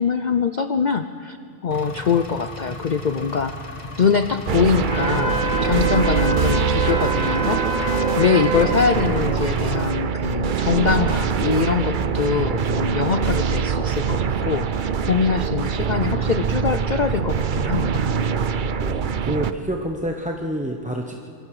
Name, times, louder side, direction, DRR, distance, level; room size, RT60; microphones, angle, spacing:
voice 1, 0.0-1.4 1.6-7.6 8.2-18.1, left 6 dB, 80° left, 10 dB, 0.4 m, -23 dB
Engine, 1.7-9.9, left 2 dB, 20° left, 1.4 m, -36 dB
sound 1, 4.5-19.5, right 7 dB, 50° right, 0.6 m, -23 dB
Wind instrument woodwind instrument, 4.8-8.8, equal, 55° left, 8.3 m, -26 dB
voice 2, 18.7-21.1, equal, 5° right, 1 dB, 0.7 m, -28 dB
26.0 x 22.5 x 4.9 m, 2.4 s
omnidirectional pair, 1.6 m